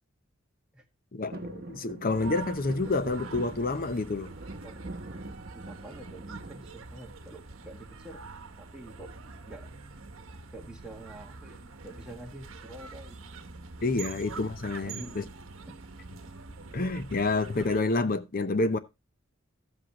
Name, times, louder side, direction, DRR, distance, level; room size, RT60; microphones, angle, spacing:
voice 1, 1.1-4.3 13.8-15.2 16.7-18.8, left 3 dB, 45° left, 0.7 m, -28 dB
sound 1, 1.3-7.5 7.9-8.5 9.8-10.2 10.5-10.6 10.8-11.2 12.0-12.9 13.4-13.5, right 2 dB, 50° right, 1.0 m, -44 dB
sound 2, 2.1-17.8, right 4 dB, 70° right, 1.1 m, -45 dB
voice 2, 5.5-8.2 8.6-9.1 9.4-9.7 10.5-13.3 14.0-14.2 14.8-15.2 15.7-15.8, right 1 dB, 5° right, 1.7 m, -47 dB
13.0 x 7.8 x 2.9 m
head